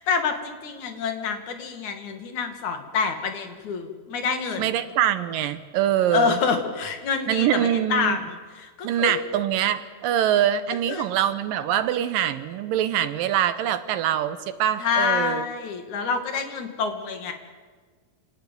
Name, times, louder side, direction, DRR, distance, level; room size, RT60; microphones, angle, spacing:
voice 1, 0.0-4.7 6.1-9.2 10.8-11.1 14.8-17.3, left 5 dB, 55° left, 6 dB, 3.3 m, -27 dB
voice 2, 4.6-6.4 7.3-8.2 8.8-15.4, right 10 dB, 70° right, 11 dB, 2.4 m, -24 dB
27.0 x 18.5 x 9.2 m, 1.5 s
omnidirectional pair, 4.5 m